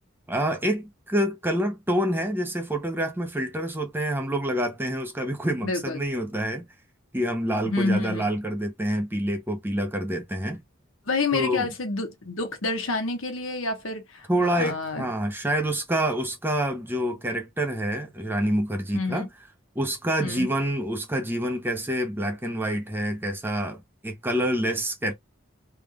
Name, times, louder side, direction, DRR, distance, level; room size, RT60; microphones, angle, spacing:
voice 1, 0.3-6.6 7.1-10.6 11.3-11.7 14.3-19.3 19.7-25.1, right 1 dB, 10° right, 0.7 m, -27 dB
voice 2, 5.6-6.0 7.6-8.3 11.1-15.1 18.9-19.3 20.2-20.5, left 3 dB, 75° left, 1.3 m, -28 dB
3.5 x 3.2 x 2.4 m
head